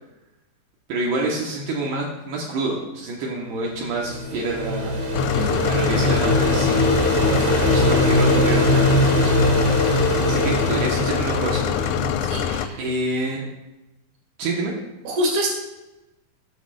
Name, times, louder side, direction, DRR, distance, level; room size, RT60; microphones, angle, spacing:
voice 1, 0.9-5.0 5.6-9.3 10.3-12.0 12.8-13.5 14.4-14.7, right 2 dB, 75° right, -3 dB, 3.2 m, -27 dB
sound 1, 3.7-12.5, left 1 dB, 35° right, 2.2 m, -21 dB
sound 2, 5.1-12.7, left 9 dB, 90° left, 2.7 m, -25 dB
voice 2, 5.3-5.7 10.7-10.8 12.2-12.8 15.0-15.5, right 1 dB, 55° right, -1 dB, 3.0 m, -26 dB
15.5 x 6.4 x 2.4 m, 0.97 s
omnidirectional pair, 4.8 m